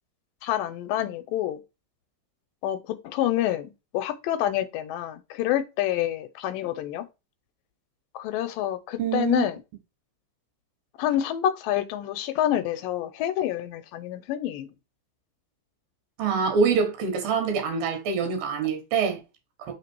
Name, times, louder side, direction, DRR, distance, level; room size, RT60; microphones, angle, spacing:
voice 1, 0.4-1.6 2.6-7.0 8.1-9.6 11.0-14.7, left 12 dB, 85° left, 2.3 m, -27 dB
voice 2, 9.0-9.5 16.2-19.2, right 5 dB, 80° right, 3.2 m, -25 dB
5.9 x 3.6 x 4.5 m
omnidirectional pair, 4.0 m